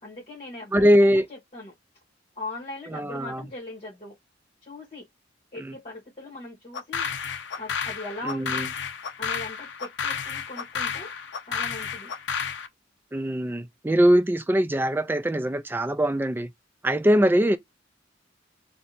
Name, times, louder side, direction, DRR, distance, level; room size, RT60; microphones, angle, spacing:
voice 1, 0.0-1.7 2.3-4.2 4.6-5.1 5.5-7.1 7.6-8.7 9.2-11.1 11.4-12.1, left 2 dB, 30° left, 1.1 m, -40 dB
voice 2, 0.7-1.3 2.9-3.4 5.6-5.7 8.2-8.7 13.1-16.5 16.8-17.6, equal, 10° right, 0.3 m, -22 dB
sound 1, 6.7-12.7, left 6 dB, 60° left, 0.5 m, -31 dB
2.7 x 2.2 x 3.9 m
head